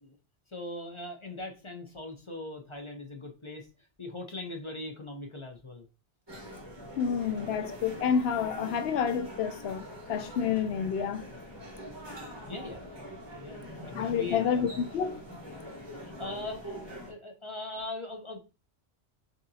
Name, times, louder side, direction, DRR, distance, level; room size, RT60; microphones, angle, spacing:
voice 1, 0.5-3.7 4.0-5.9 12.5-12.9 13.4-14.7 16.0-16.8 17.1-18.4, left 2 dB, 35° left, 0.6 m, -40 dB
sound 1, 6.3-17.1, equal, 20° right, 1.5 m, -43 dB
voice 2, 7.0-11.3 13.9-15.2, left 7 dB, 65° left, 0.8 m, -29 dB
6.3 x 2.7 x 2.7 m
omnidirectional pair, 1.2 m